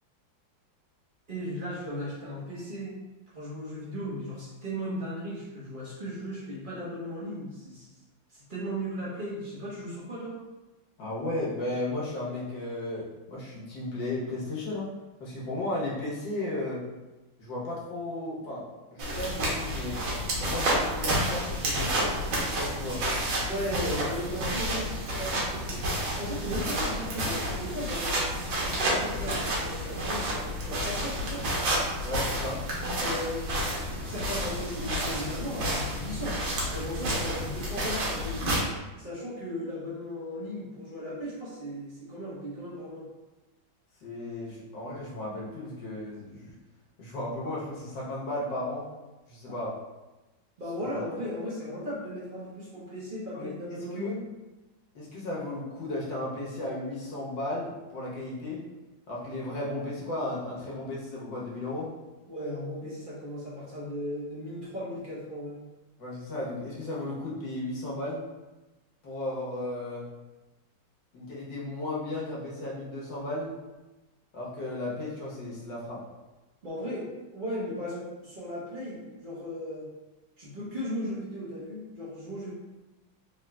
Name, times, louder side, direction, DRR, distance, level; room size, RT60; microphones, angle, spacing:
voice 1, 1.3-3.0 3.3-7.9 8.3-10.4 23.4-28.2 28.6-31.4 32.9-36.4 36.7-38.6 39.0-43.1 49.5-49.6 50.6-54.2 62.3-65.6 76.6-79.8 80.4-82.5, equal, 35° right, -8 dB, 0.8 m, -36 dB
voice 2, 11.0-14.9 15.2-16.8 17.4-18.6 18.9-20.0 20.4-22.1 22.5-23.0 32.0-32.6 44.0-46.5 47.0-48.9 49.3-49.8 50.9-51.0 53.3-54.2 54.9-58.6 59.1-61.9 66.0-68.2 69.0-70.1 71.1-73.6 74.3-76.0, left 1 dB, 65° left, -5 dB, 1.7 m, -34 dB
sound 1, 19.0-38.6, right 1 dB, 75° right, 1.6 m, -30 dB
3.8 x 3.8 x 2.2 m, 1.1 s
omnidirectional pair, 2.1 m